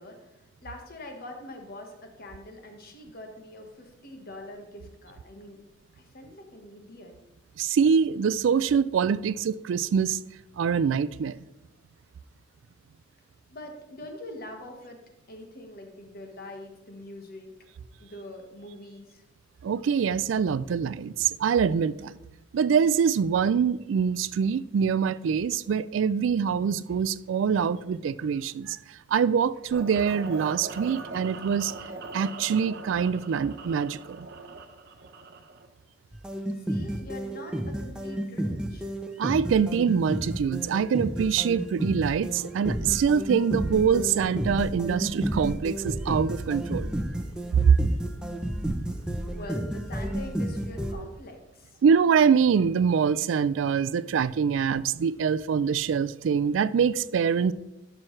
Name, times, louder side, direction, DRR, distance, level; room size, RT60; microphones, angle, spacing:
voice 1, 0.0-5.6 5.9-7.1 13.5-15.0 15.3-17.5 18.0-19.2 36.6-38.9 49.3-51.8, left 1 dB, 55° left, 1.3 m, -44 dB
voice 2, 7.6-10.2 10.6-11.4 19.6-22.2 22.5-28.8 29.1-31.7 32.1-34.3 39.2-46.9 47.5-47.8 51.8-57.5, right 6 dB, 75° right, 0.3 m, -24 dB
sound 1, 29.7-35.7, right 3 dB, 55° right, 0.8 m, -41 dB
sound 2, 36.1-50.9, right 1 dB, 5° right, 0.6 m, -31 dB
12.0 x 6.2 x 3.2 m
head